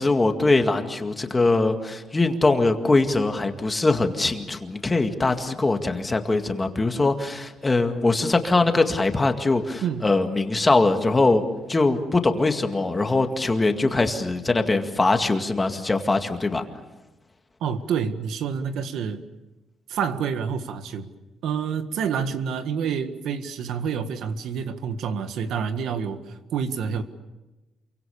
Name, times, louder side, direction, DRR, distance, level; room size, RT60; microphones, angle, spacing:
voice 1, 0.0-11.4 11.7-16.6, left 3 dB, 15° left, 5 dB, 2.0 m, -22 dB
voice 2, 9.8-10.1 17.6-19.2 19.9-21.1 21.4-27.0, right 7 dB, 80° right, 9 dB, 1.7 m, -28 dB
28.0 x 24.5 x 7.2 m, 1.1 s
cardioid pair, 145°, 0 cm